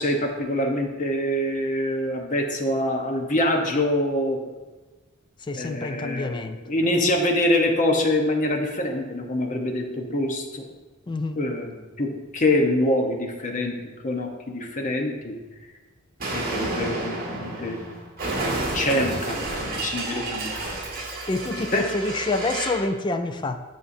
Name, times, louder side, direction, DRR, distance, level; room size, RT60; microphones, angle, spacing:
voice 1, 0.0-4.4 5.5-10.6 11.4-13.7 14.0-15.3 16.3-17.8 18.7-20.6 21.7-21.8, left 1 dB, 40° left, 0.9 m, -25 dB
voice 2, 5.5-6.6 11.1-11.4 21.3-23.6, left 2 dB, 20° left, 0.3 m, -27 dB
Explosion, 16.2-22.9, right 2 dB, 45° right, 1.6 m, -30 dB
9.8 x 6.3 x 2.6 m
head